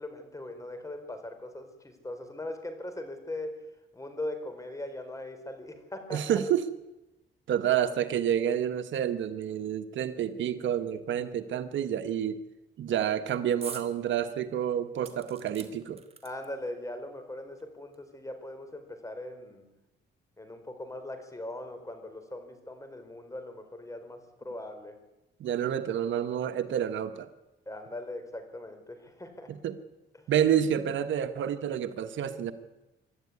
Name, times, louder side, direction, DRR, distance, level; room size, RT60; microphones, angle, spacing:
voice 1, 0.0-3.5 3.9-6.4 16.2-19.6 20.4-25.0 27.7-29.5, left 1 dB, 15° left, 8 dB, 4.6 m, -40 dB
voice 2, 6.1-6.7 7.5-12.4 12.8-16.0 25.4-27.3 29.5-29.8 30.3-32.5, right 9 dB, 70° right, 10 dB, 1.4 m, -29 dB
sound 1, 13.6-13.9 14.3-14.4 15.0-16.7 17.6-17.7 17.9-18.0, right 5 dB, 30° right, 3.0 m, -44 dB
25.5 x 12.0 x 9.7 m, 1.0 s
cardioid pair, 90°, 20 cm